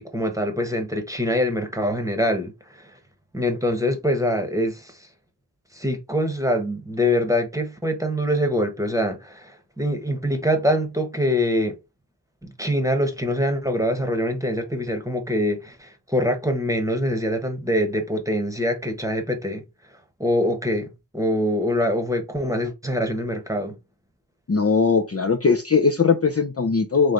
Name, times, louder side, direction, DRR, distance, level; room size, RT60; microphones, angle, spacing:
voice 1, 0.0-2.5 2.8-2.9 3.3-5.0 5.7-11.7 12.4-19.6 20.2-20.9 21.1-23.8, equal, 5° right, 1.2 m, -24 dB
voice 2, 24.5-27.1, left 5 dB, 35° left, 0.7 m, -20 dB
3.3 x 3.2 x 3.8 m
wide cardioid pair, 40°, 43 cm